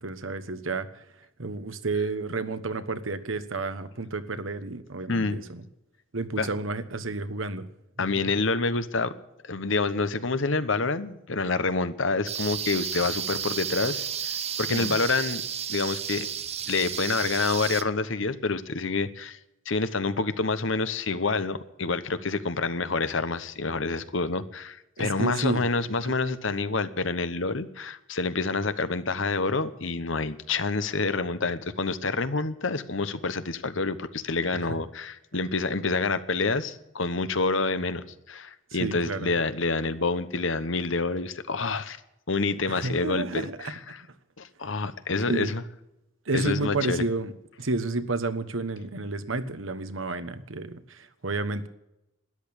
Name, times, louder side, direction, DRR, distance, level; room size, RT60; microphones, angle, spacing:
voice 1, 0.0-0.9 1.4-5.6 6.1-7.7 8.0-8.3 14.7-15.0 25.0-25.7 26.0-26.1 34.5-34.6 38.8-39.3 42.7-43.8 45.3-45.6 46.3-47.3 47.6-51.7, right 3 dB, 75° right, 11 dB, 1.2 m, -31 dB
voice 2, 8.0-9.1 9.4-14.0 14.6-15.4 15.7-16.3 16.7-19.4 19.7-42.0 42.3-44.0 44.4-45.6 46.3-47.0, left 3 dB, 70° left, 13 dB, 1.1 m, -27 dB
sound 1, 12.3-17.8, right 8 dB, 30° right, 0.7 m, -32 dB
13.0 x 10.5 x 8.7 m, 0.88 s
head